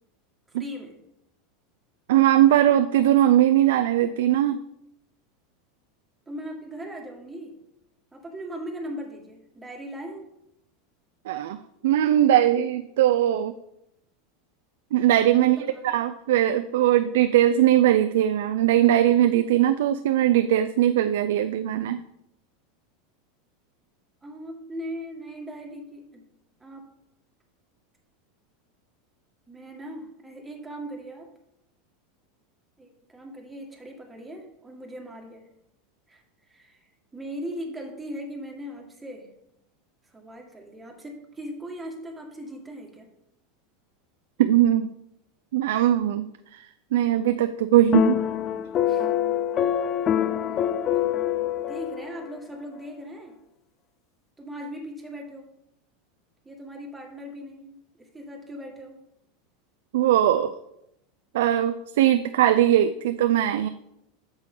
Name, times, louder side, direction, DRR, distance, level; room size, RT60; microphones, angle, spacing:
voice 1, 0.5-1.0 6.3-7.6 8.1-10.3 15.4-16.0 24.2-26.3 26.6-26.8 29.5-31.3 32.8-35.5 36.1-36.2 36.5-36.9 37.1-39.3 40.1-43.1 48.9-49.1 50.5-50.7 50.9-51.0 51.6-53.4 54.4-55.5 56.5-59.0, equal, 10° right, 0 dB, 1.8 m, -39 dB
voice 2, 2.1-4.6 11.3-11.6 11.8-13.5 14.9-15.6 15.8-22.0 44.4-44.9 45.5-46.3 46.5-46.6 46.9-48.2 59.9-60.5 61.3-63.7, right 12 dB, 80° right, 9 dB, 0.4 m, -20 dB
sound 1, 47.9-52.4, left 10 dB, 35° left, 0.4 m, -25 dB
8.2 x 6.4 x 3.8 m, 0.81 s
supercardioid pair, 120°, 0 cm